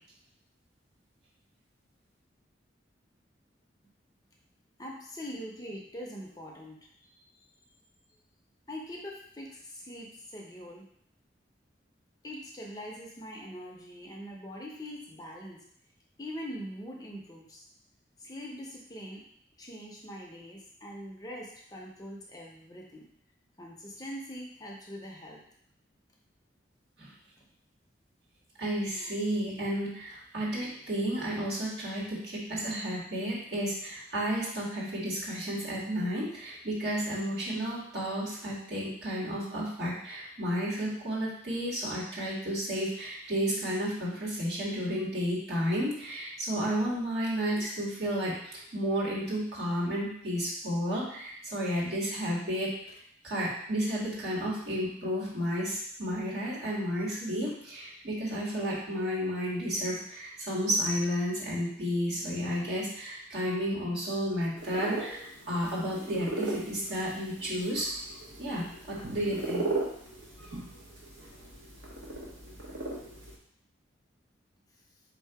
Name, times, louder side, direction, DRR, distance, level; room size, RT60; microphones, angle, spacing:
voice 1, 4.8-6.8 7.1-7.3 8.7-10.9 12.2-15.6 16.2-17.6 18.2-19.2 19.6-23.1 23.6-25.4, equal, 20° left, -2 dB, 0.6 m, -42 dB
voice 2, 28.6-52.7 53.2-67.9 68.4-69.7, equal, 60° right, -6 dB, 1.6 m, -32 dB
sound 1, 64.6-73.3, right 2 dB, 85° right, 1.2 m, -38 dB
3.9 x 2.8 x 4.6 m, 0.66 s
head